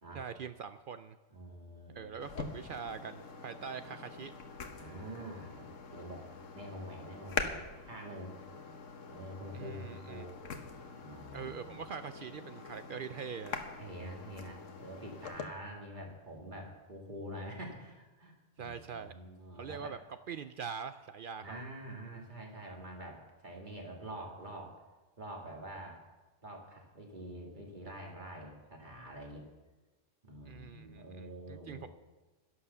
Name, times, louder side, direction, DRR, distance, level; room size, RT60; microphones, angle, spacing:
voice 1, 0.1-1.2 1.9-4.3 9.5-10.3 11.3-13.6 18.6-19.2 19.6-20.0 20.3-21.6 30.4-31.9, right 6 dB, 60° right, 11 dB, 0.6 m, -43 dB
voice 2, 1.3-2.1 4.8-6.3 6.5-8.3 9.1-10.3 11.0-11.8 13.8-20.0 21.4-24.7 25.2-26.0 26.4-29.4 30.2-31.9, right 1 dB, 40° right, 0 dB, 2.4 m, -46 dB
sound 1, 2.2-15.4, left 5 dB, 90° left, 1.4 m, -44 dB
11.0 x 9.9 x 6.9 m, 1.2 s
omnidirectional pair, 1.3 m